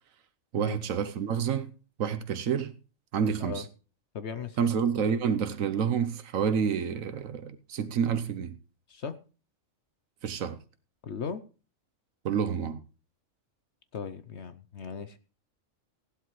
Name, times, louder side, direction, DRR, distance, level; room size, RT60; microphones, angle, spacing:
voice 1, 0.5-1.7 2.0-2.7 3.1-3.6 4.6-8.6 10.2-10.6 12.2-12.8, right 7 dB, 85° right, 1.2 m, -28 dB
voice 2, 4.1-4.7 8.9-9.2 11.0-11.5 13.9-15.2, left 6 dB, 60° left, 1.0 m, -37 dB
16.5 x 11.5 x 3.1 m
omnidirectional pair, 1.4 m